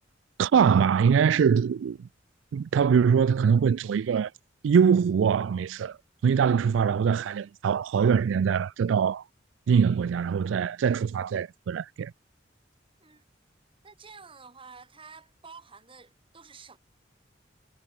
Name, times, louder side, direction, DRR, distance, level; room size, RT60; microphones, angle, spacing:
voice 1, 0.4-2.1 2.5-4.3 4.6-6.0 6.2-9.2 9.7-12.1, right 7 dB, 85° right, 0.3 m, -23 dB
voice 2, 13.8-16.8, right 5 dB, 30° right, 1.8 m, -49 dB
head